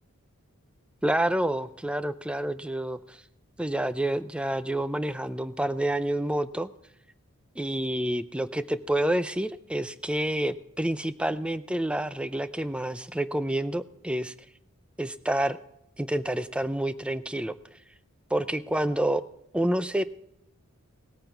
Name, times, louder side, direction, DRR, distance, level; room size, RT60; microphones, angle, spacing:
voice 1, 1.0-3.2 3.6-6.7 7.6-14.3 15.0-15.6 16.0-17.5 18.3-19.2 19.5-20.0, right 1 dB, 5° right, 14 dB, 0.4 m, -28 dB
18.5 x 9.0 x 4.6 m, 0.82 s
head